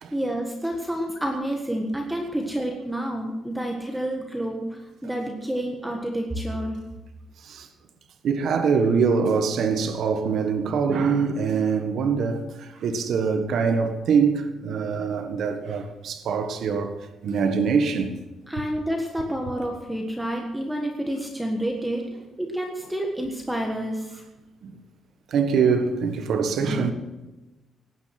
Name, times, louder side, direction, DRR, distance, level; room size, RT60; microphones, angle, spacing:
voice 1, 0.1-6.8 18.5-22.1 22.4-24.2 26.7-26.8, right 1 dB, 5° right, 1.6 m, -29 dB
voice 2, 8.2-17.0 17.2-18.2 24.6-24.7 25.3-26.9, right 5 dB, 55° right, 1.6 m, -24 dB
18.5 x 9.6 x 6.0 m
cardioid pair, 180°, 0 cm